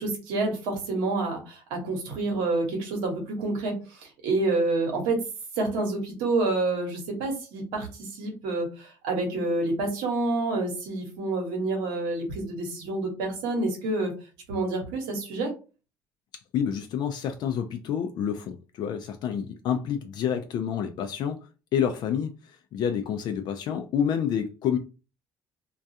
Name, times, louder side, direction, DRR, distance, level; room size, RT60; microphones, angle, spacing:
voice 1, 0.0-5.2 5.6-14.1 14.5-15.5, right 2 dB, 85° right, 1.0 m, -28 dB
voice 2, 16.5-21.4 21.7-24.8, left 8 dB, 60° left, 0.3 m, -28 dB
2.3 x 2.3 x 2.7 m
supercardioid pair, 80°, 8 cm